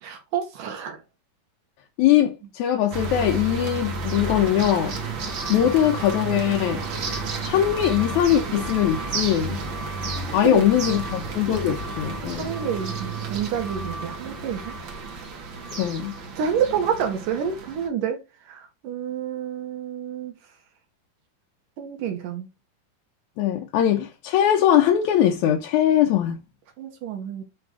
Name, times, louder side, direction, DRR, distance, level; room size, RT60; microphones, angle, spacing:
voice 1, 0.0-1.0 10.2-11.0 12.4-14.8 16.4-18.2 18.5-20.3 21.8-22.5 26.8-27.4, right 8 dB, 75° right, 2.9 m, -28 dB
voice 2, 2.0-4.9 5.5-6.8 7.4-9.6 10.3-12.5 15.8-16.2 23.4-26.4, left 10 dB, 70° left, 2.0 m, -21 dB
sound 1, 2.9-17.9, right 3 dB, 50° right, 1.6 m, -31 dB
9.8 x 3.8 x 4.8 m
omnidirectional pair, 3.9 m